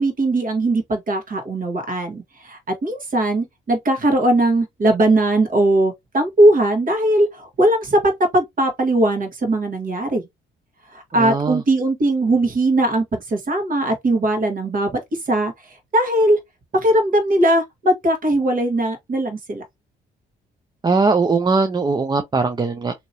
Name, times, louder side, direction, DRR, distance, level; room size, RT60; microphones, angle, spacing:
voice 1, 0.0-8.0 8.3-10.3 10.9-15.0 15.3-16.4 16.7-19.6, right 1 dB, 45° right, 1.5 m, -19 dB
voice 2, 11.2-11.6 20.8-22.9, right 4 dB, 20° right, 0.5 m, -20 dB
2.9 x 2.7 x 2.7 m
cardioid pair, 90°, 20 cm